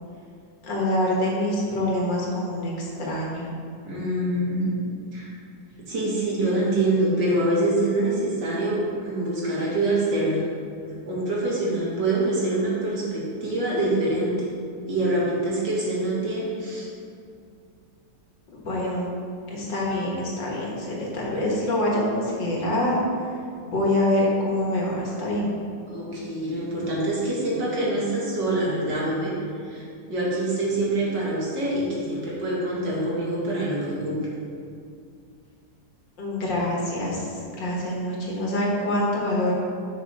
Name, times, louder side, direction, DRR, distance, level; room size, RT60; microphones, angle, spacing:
voice 1, 0.6-3.5 18.5-19.1 19.5-23.0 23.6-25.5 36.2-39.5, left 1 dB, 75° left, -3 dB, 2.3 m, -25 dB
voice 2, 3.9-4.8 5.1-5.3 5.9-10.4 11.1-14.4 14.9-16.9 25.9-29.8 30.1-34.2, right 1 dB, 70° right, -6 dB, 2.5 m, -25 dB
10.5 x 6.2 x 3.5 m, 2.4 s
omnidirectional pair, 2.0 m